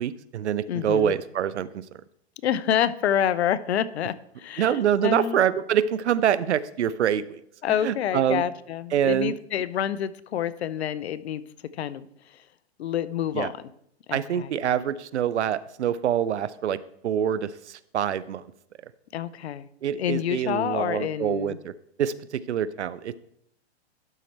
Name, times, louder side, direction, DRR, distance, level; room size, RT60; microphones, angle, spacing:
voice 1, 0.0-1.8 4.6-7.4 7.8-8.4 8.9-9.4 13.3-13.5 14.1-18.4 19.8-21.7 22.0-23.2, right 9 dB, 85° right, 18 dB, 0.5 m, -25 dB
voice 2, 0.7-1.1 2.4-5.4 7.6-11.4 11.7-12.5 12.8-13.5 14.1-14.5 19.1-19.7 20.0-21.6, left 10 dB, 75° left, 17 dB, 0.6 m, -28 dB
12.0 x 4.4 x 4.2 m, 0.73 s
hypercardioid pair, 130°, 33 cm